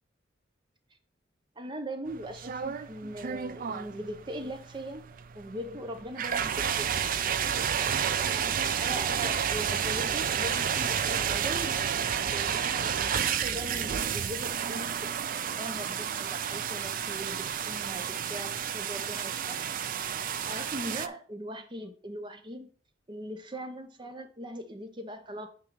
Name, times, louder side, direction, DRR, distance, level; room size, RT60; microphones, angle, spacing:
voice 1, 1.6-5.0 5.3-7.0 8.3-8.5 8.8-15.1 15.6-19.8 20.5-22.7 23.1-25.5, equal, 25° right, 6 dB, 0.8 m, -40 dB
sound 1, 2.1-21.1, right 8 dB, 45° right, 0.4 m, -31 dB
5.9 x 4.7 x 5.5 m, 0.42 s
head